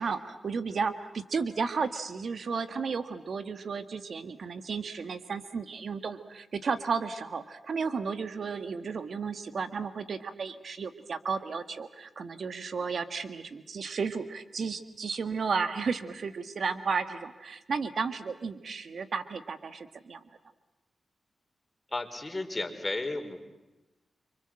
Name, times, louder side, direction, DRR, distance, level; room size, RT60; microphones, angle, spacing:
voice 1, 0.0-20.2, right 5 dB, 70° right, 10 dB, 1.7 m, -33 dB
voice 2, 21.9-23.4, left 2 dB, 25° left, 5 dB, 4.5 m, -33 dB
29.0 x 25.5 x 7.7 m, 1.0 s
cardioid pair, 50°, 0 cm